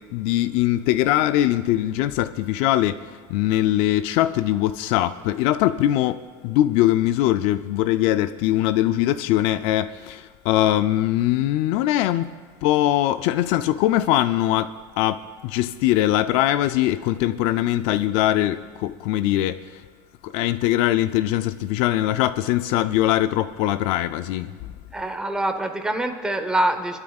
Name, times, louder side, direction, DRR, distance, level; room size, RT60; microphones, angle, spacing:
voice 1, 0.1-12.3 12.6-19.8 20.2-24.7, left 14 dB, 55° left, 0.4 m, -22 dB
voice 2, 24.9-27.0, right 1 dB, 5° right, 0.9 m, -25 dB
28.5 x 12.0 x 2.4 m
cardioid pair, 155°, 12 cm